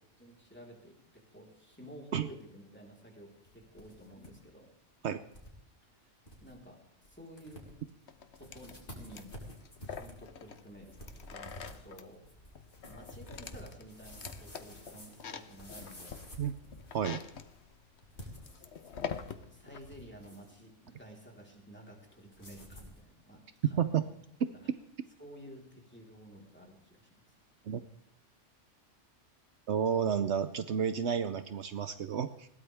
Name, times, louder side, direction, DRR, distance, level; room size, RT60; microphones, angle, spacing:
voice 1, 0.2-4.7 6.0-7.8 8.2-9.5 9.8-12.2 12.9-16.2 18.5-24.1 24.5-24.7 25.2-27.3, equal, 10° left, -1 dB, 3.9 m, -53 dB
sound 1, 3.5-4.3 4.6-4.7 5.3-5.5 5.9-6.0 6.2-6.5 7.0-7.1 7.4-7.9 8.3-17.2 18.0-19.3 19.6-20.6 22.3-23.0, left 1 dB, 45° left, 3.9 m, -50 dB
sound 2, 8.1-19.8, left 6 dB, 65° left, 1.3 m, -46 dB
voice 2, 29.7-32.5, right 8 dB, 70° right, 11 dB, 1.0 m, -31 dB
21.0 x 17.0 x 3.5 m, 0.75 s
omnidirectional pair, 1.3 m